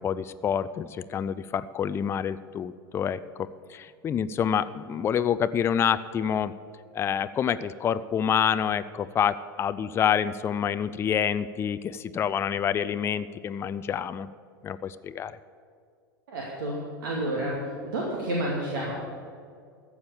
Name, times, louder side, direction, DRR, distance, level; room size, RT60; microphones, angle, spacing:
voice 1, 0.0-6.5 6.9-14.3 14.6-15.3, left 8 dB, 20° left, 14 dB, 0.4 m, -27 dB
voice 2, 16.3-17.6 17.8-18.9, right 1 dB, 65° right, -3 dB, 2.3 m, -30 dB
14.0 x 7.2 x 7.2 m, 2.2 s
figure-of-eight pair, 90°, 12 cm